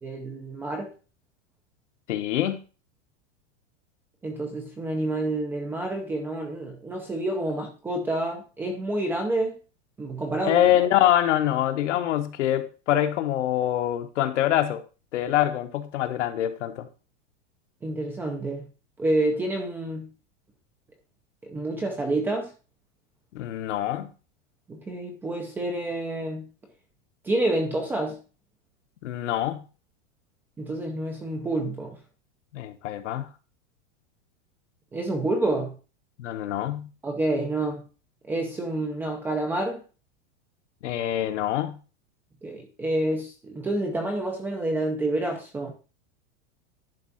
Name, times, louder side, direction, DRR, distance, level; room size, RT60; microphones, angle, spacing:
voice 1, 0.0-0.9 4.2-9.5 10.0-10.6 17.8-18.7 19.0-20.1 21.4-22.5 24.7-26.4 27.2-28.2 30.6-32.0 34.9-35.8 37.0-37.8 38.2-39.8 42.4-45.7, right 1 dB, 5° right, 0.5 m, -28 dB
voice 2, 2.1-2.6 10.4-14.8 15.1-16.9 23.3-24.1 29.0-29.6 32.5-33.3 36.2-36.9 40.8-41.8, left 12 dB, 75° left, 1.3 m, -25 dB
10.5 x 3.7 x 5.8 m
supercardioid pair, 180°, 36 cm